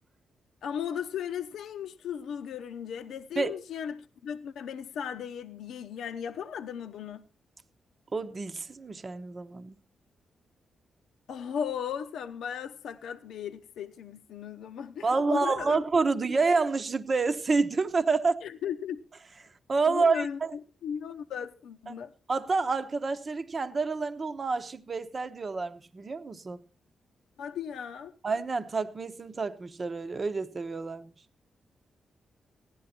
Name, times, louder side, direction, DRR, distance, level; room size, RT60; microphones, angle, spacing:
voice 1, 0.6-7.2 11.3-15.8 18.4-19.0 19.9-22.1 27.4-28.1, left 8 dB, 85° left, 0.7 m, -36 dB
voice 2, 8.1-9.8 15.0-18.4 19.7-20.6 22.3-26.6 28.2-31.1, right 4 dB, 40° right, 0.9 m, -28 dB
16.0 x 11.0 x 4.3 m
cardioid pair, 80°, 0 cm